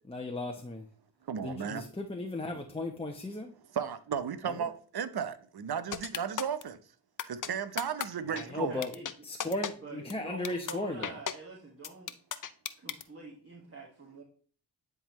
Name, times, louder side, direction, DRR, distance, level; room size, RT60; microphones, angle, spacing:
voice 1, 0.1-0.9 1.4-3.5 4.4-4.7 8.3-8.9 9.2-11.2, left 2 dB, 10° left, 0.9 m, -36 dB
voice 2, 1.2-1.9 3.7-6.8 7.3-8.8, right 7 dB, 55° right, 0.8 m, -35 dB
sound 1, 5.9-6.6 7.2-7.5 7.8-8.1 8.4-8.5 8.8-9.1 9.4-9.7 10.1-10.2 10.4-10.7 11.0-11.3 11.8-13.0, left 8 dB, 45° left, 0.6 m, -34 dB
voice 3, 8.2-9.0 9.8-12.1 12.8-14.2, right 3 dB, 30° right, 1.8 m, -47 dB
10.0 x 3.7 x 3.1 m
cardioid pair, 45°, 45 cm